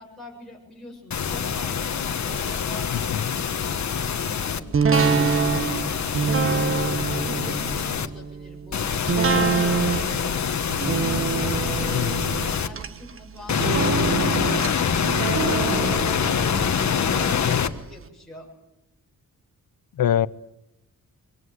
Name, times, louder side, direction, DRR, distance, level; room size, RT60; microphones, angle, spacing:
voice 1, 0.0-5.6 6.3-6.7 7.2-9.0 9.3-10.5 11.4-16.4 17.0-18.5, left 1 dB, ahead, 7.0 m, -43 dB
sound 1, 1.1-4.6 4.9-8.1 8.7-12.7 13.5-17.7, left 7 dB, 50° left, 1.5 m, -25 dB
voice 2, 2.9-3.2 11.9-12.1 17.4-17.7 20.0-20.3, left 11 dB, 75° left, 0.9 m, -24 dB
sound 2, 4.7-17.7 18.1-18.2, right 5 dB, 40° right, 1.1 m, -26 dB
25.5 x 24.0 x 7.9 m
wide cardioid pair, 175°, 35 cm